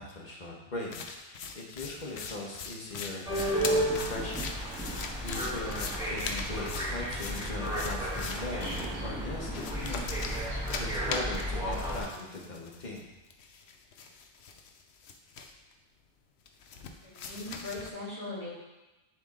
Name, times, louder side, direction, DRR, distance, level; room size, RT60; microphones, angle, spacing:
voice 1, 0.0-4.4 4.8-10.1 10.8-13.0, left 2 dB, 45° left, -2 dB, 1.3 m, -40 dB
sound 1, 0.8-8.9 9.5-13.0 13.3-15.7 16.5-17.9, left 5 dB, 85° left, 0.9 m, -40 dB
sound 2, 3.3-12.0, right 1 dB, 5° right, 1.3 m, -33 dB
voice 2, 17.0-18.6, left 2 dB, 50° right, -9 dB, 2.8 m, -39 dB
10.5 x 3.5 x 3.8 m, 1.0 s
omnidirectional pair, 1.1 m